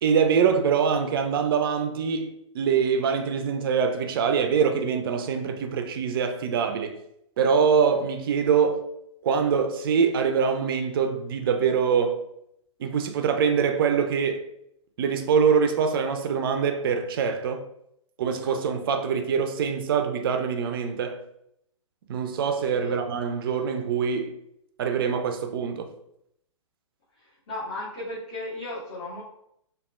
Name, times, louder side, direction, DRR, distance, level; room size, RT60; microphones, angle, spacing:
voice 1, 0.0-7.0 7.4-8.9 9.2-12.2 12.8-14.5 15.0-17.6 18.2-21.2 22.1-24.4 24.8-25.9, right 6 dB, 45° right, 0.4 m, -24 dB
voice 2, 27.5-29.2, left 1 dB, 35° left, 1.1 m, -35 dB
3.3 x 2.3 x 2.4 m
figure-of-eight pair, 125°, 17 cm